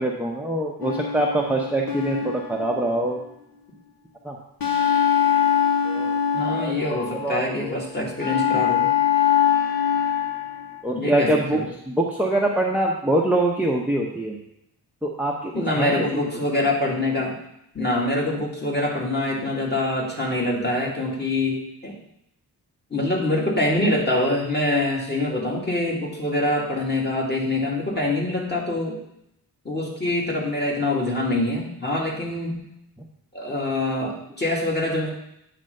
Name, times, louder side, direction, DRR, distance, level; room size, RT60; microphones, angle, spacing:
voice 1, 0.0-3.2 4.2-4.4 5.8-6.2 6.6-7.7 10.8-11.6 11.9-14.4 15.0-16.3, right 1 dB, 5° right, -2 dB, 0.8 m, -24 dB
sound 1, 0.8-3.3 4.6-7.4 8.2-10.8, left 9 dB, 65° left, 1.4 m, -23 dB
voice 2, 6.3-8.9 10.9-11.6 15.5-17.4 17.7-21.9 22.9-29.0 29.7-32.6 33.3-35.1, left 1 dB, 25° left, -2 dB, 2.1 m, -25 dB
9.0 x 3.4 x 6.5 m, 0.79 s
wide cardioid pair, 110°, 38 cm